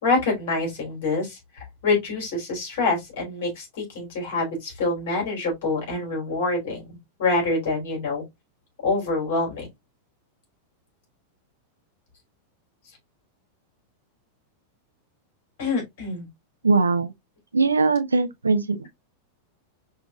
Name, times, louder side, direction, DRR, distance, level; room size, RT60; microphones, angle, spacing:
voice 1, 0.0-8.2 8.8-9.7 15.6-16.3, left 3 dB, 50° left, 3.3 m, -26 dB
voice 2, 16.6-17.1 17.5-18.9, right 4 dB, 75° right, 0.5 m, -21 dB
5.6 x 3.5 x 2.4 m
figure-of-eight pair, 90°, 0 cm